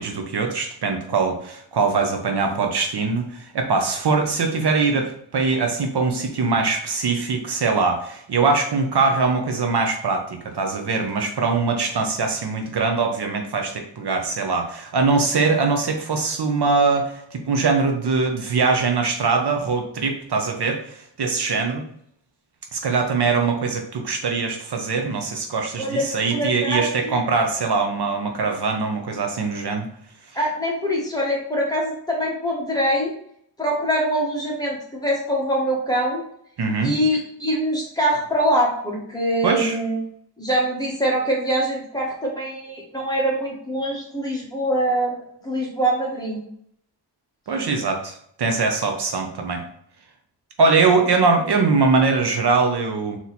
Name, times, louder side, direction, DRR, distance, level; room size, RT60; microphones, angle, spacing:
voice 1, 0.0-21.8 22.7-29.9 36.6-36.9 39.4-39.8 47.5-49.6 50.6-53.2, right 4 dB, 65° right, 4 dB, 0.7 m, -22 dB
voice 2, 26.3-27.2 30.3-33.1 33.6-36.2 36.8-40.0 40.4-45.1 45.4-46.4, right 1 dB, 10° left, -3 dB, 1.4 m, -23 dB
4.0 x 3.0 x 4.1 m, 0.69 s
wide cardioid pair, 110°, 43 cm